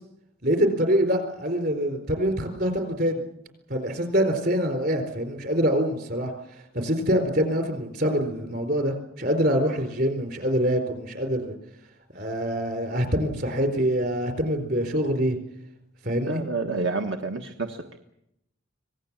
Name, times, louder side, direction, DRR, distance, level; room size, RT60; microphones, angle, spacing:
voice 1, 0.4-3.2 3.7-6.3 6.7-11.5 12.1-15.4 16.0-16.4, equal, 50° right, 6 dB, 4.2 m, -25 dB
voice 2, 16.3-18.0, right 3 dB, 70° right, 4 dB, 1.5 m, -29 dB
25.5 x 19.0 x 7.5 m, 0.82 s
head